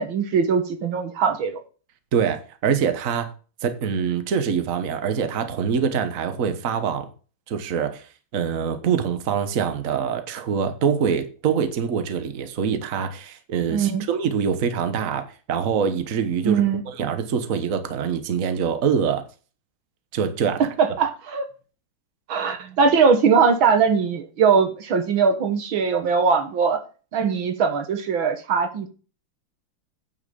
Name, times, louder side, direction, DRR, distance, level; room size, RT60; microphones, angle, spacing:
voice 1, 0.0-1.6 13.7-14.1 16.4-16.8 20.6-21.4 22.3-26.8 27.1-28.9, right 5 dB, 80° right, 2.1 m, -21 dB
voice 2, 2.1-3.3 3.6-7.1 7.5-8.1 8.3-19.2 20.1-20.6, right 7 dB, 45° right, 1.4 m, -24 dB
9.6 x 5.9 x 6.8 m
omnidirectional pair, 2.2 m